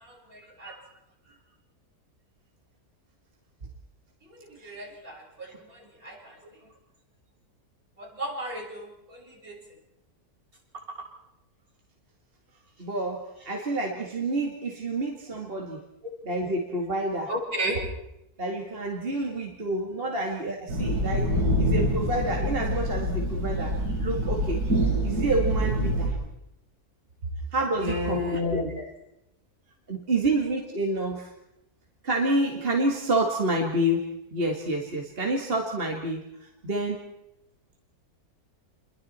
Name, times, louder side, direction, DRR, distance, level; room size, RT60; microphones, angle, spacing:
voice 1, 0.3-0.8 4.6-5.5 6.0-6.3 8.0-9.6 17.3-17.8 27.8-28.6, equal, 65° right, -2 dB, 7.1 m, -32 dB
voice 2, 12.8-15.8 16.2-17.3 18.4-24.6 25.0-26.2 27.5-28.6 29.9-31.3 32.0-36.2 36.6-37.0, right 1 dB, 40° right, 1 dB, 2.4 m, -28 dB
sound 1, 20.7-26.1, equal, 90° right, 7.5 m, -26 dB
29.5 x 22.5 x 4.4 m, 0.85 s
omnidirectional pair, 1.6 m